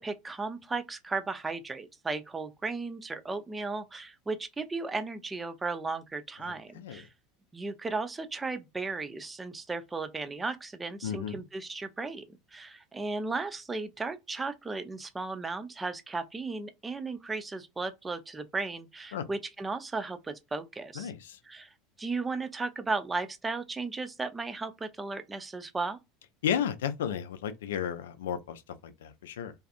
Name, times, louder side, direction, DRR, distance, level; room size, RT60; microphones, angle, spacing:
voice 1, 0.0-7.1 7.5-21.1 21.4-26.0, right 3 dB, 15° right, 0.4 m, -35 dB
voice 2, 6.4-7.0 11.0-11.4 19.1-19.3 21.0-21.4 26.4-29.5, left 8 dB, 75° left, 0.3 m, -33 dB
2.6 x 2.4 x 2.4 m
figure-of-eight pair, 75°, 0 cm